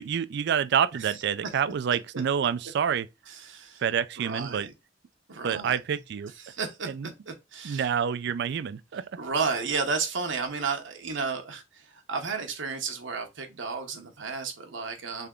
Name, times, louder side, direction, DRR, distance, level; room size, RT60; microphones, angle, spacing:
voice 1, 0.0-3.1 3.8-4.7 5.4-6.3 6.9-7.1 7.6-9.2, right 8 dB, 60° right, 0.4 m, -28 dB
voice 2, 0.9-1.5 3.3-3.8 4.2-4.7 5.3-6.0 6.4-7.9 8.9-15.3, right 4 dB, 75° right, 0.9 m, -33 dB
3.5 x 3.3 x 3.6 m
head